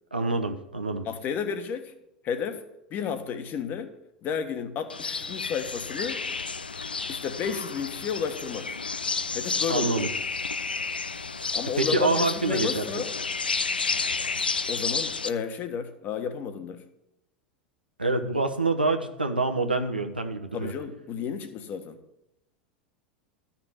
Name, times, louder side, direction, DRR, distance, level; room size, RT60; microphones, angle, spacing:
voice 1, 0.1-1.1 9.7-10.1 11.8-13.0 18.0-20.7, right 3 dB, 90° right, 1.0 m, -26 dB
voice 2, 1.0-1.9 2.2-3.9 4.2-6.2 7.1-8.7 9.3-9.9 11.5-13.1 14.7-16.8 20.5-22.0, left 7 dB, 40° left, 1.5 m, -32 dB
sound 1, 4.9-15.3, left 4 dB, 80° left, 0.5 m, -31 dB
13.0 x 6.0 x 7.3 m
figure-of-eight pair, 85°, 5 cm